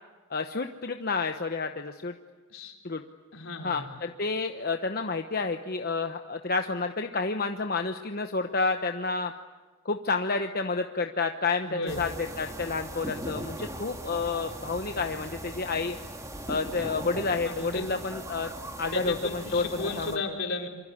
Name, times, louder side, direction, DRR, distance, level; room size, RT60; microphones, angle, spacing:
voice 1, 0.3-2.1 2.8-3.0 3.6-9.3 9.8-12.1 12.4-16.0 16.5-18.5 18.8-20.2, left 4 dB, 45° left, 6 dB, 1.0 m, -30 dB
voice 2, 3.3-3.9 11.6-12.0 17.4-17.8 18.9-20.7, left 3 dB, 70° left, 2 dB, 4.3 m, -34 dB
sound 1, 11.9-20.2, right 1 dB, 15° right, 2.1 m, -39 dB
27.0 x 25.0 x 8.6 m, 1.3 s
head